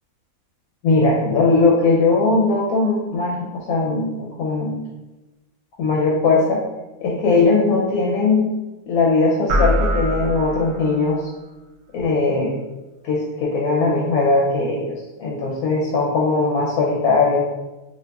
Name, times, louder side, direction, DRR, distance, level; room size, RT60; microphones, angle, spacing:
voice 1, 0.8-4.8 5.8-6.6 7.0-8.5 8.9-11.3 11.9-12.5 13.0-17.4, left 3 dB, 75° left, -3 dB, 1.0 m, -19 dB
sound 1, 9.5-11.1, equal, 65° right, 0.7 m, -22 dB
3.9 x 2.7 x 2.2 m, 1.1 s
omnidirectional pair, 1.6 m